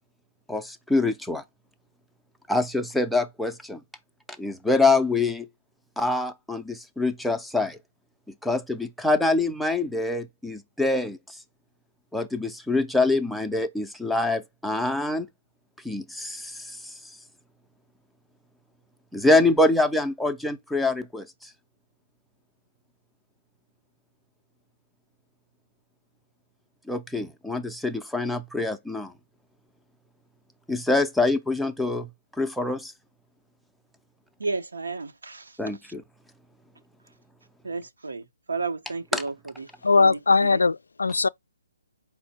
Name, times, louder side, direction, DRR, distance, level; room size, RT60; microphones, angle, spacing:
voice 1, 0.5-1.4 2.5-3.8 4.4-5.5 6.0-7.8 8.4-11.2 12.1-15.3 15.8-16.9 19.1-21.5 26.9-29.1 30.7-32.1 32.4-32.9 35.6-36.0 39.1-39.2, left 2 dB, ahead, 0.4 m, -25 dB
voice 2, 34.4-35.9 37.6-39.7 40.0-40.6, right 3 dB, 85° right, 0.8 m, -33 dB
voice 3, 39.8-41.3, left 4 dB, 90° left, 0.3 m, -20 dB
4.4 x 2.0 x 4.2 m
hypercardioid pair, 155°, 0 cm